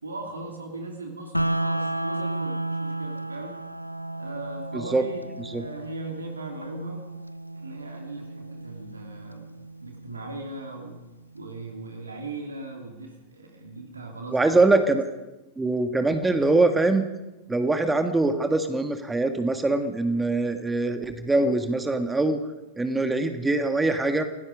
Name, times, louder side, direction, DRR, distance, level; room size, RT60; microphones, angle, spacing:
voice 1, 0.0-3.6 4.2-7.0 7.5-9.5 9.8-11.0 11.3-14.6, right 2 dB, 75° right, 2 dB, 3.0 m, -39 dB
sound 1, 1.3-11.3, right 2 dB, 90° left, 0.6 m, -33 dB
voice 2, 14.3-15.0 15.6-17.0 17.5-22.4 22.8-24.2, right 2 dB, 10° right, 7 dB, 1.7 m, -23 dB
28.0 x 18.0 x 5.3 m, 1.0 s
figure-of-eight pair, 90°, 0 cm